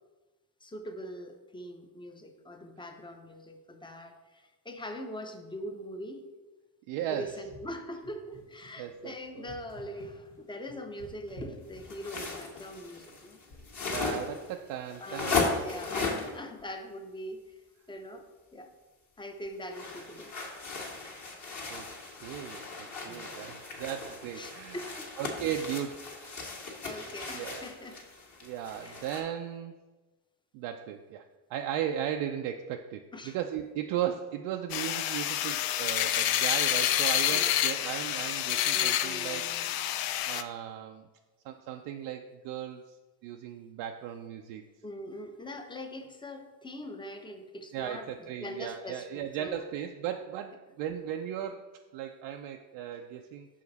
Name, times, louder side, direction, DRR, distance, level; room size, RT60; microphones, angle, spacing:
voice 1, 0.6-6.2 7.1-13.4 15.0-17.4 17.9-18.2 18.5-18.7 19.2-20.4 23.1-23.4 24.3-24.9 26.8-28.0 28.8-29.0 33.1-33.4 37.3-37.5 38.7-39.7 44.8-49.7, equal, 10° left, 5 dB, 0.6 m, -42 dB
voice 2, 6.9-7.4 8.8-9.5 13.9-15.4 21.6-21.9 22.2-24.8 25.2-26.5 27.3-28.0 28.4-29.7 30.5-31.2 31.5-39.5 40.3-41.1 41.4-43.0 43.2-44.6 47.7-53.5, right 10 dB, 75° right, 4 dB, 0.5 m, -36 dB
sound 1, 7.2-12.6 13.5-13.8, equal, 75° left, 1.6 m, -51 dB
sound 2, 11.8-16.4 19.7-29.2, left 4 dB, 40° left, 1.5 m, -36 dB
sound 3, 34.7-40.4, left 12 dB, 55° left, 0.5 m, -28 dB
5.8 x 5.0 x 4.0 m, 1.2 s
cardioid pair, 100°, 43 cm